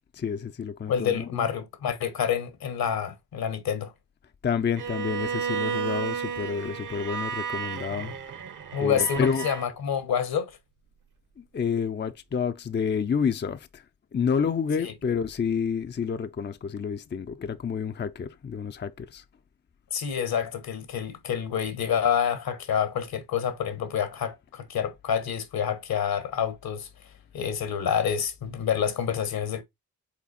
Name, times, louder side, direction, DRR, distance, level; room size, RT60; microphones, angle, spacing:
voice 1, 0.1-1.5 4.4-8.1 8.8-9.5 11.4-13.8 14.1-19.2, left 6 dB, 30° left, 0.6 m, -29 dB
voice 2, 0.9-3.9 8.7-10.6 14.8-14.9 19.9-26.9 27.3-29.6, left 8 dB, 70° left, 1.4 m, -28 dB
Bowed string instrument, 4.8-9.7, right 7 dB, 55° right, 1.2 m, -32 dB
5.9 x 3.9 x 4.2 m
supercardioid pair, 45°, 38 cm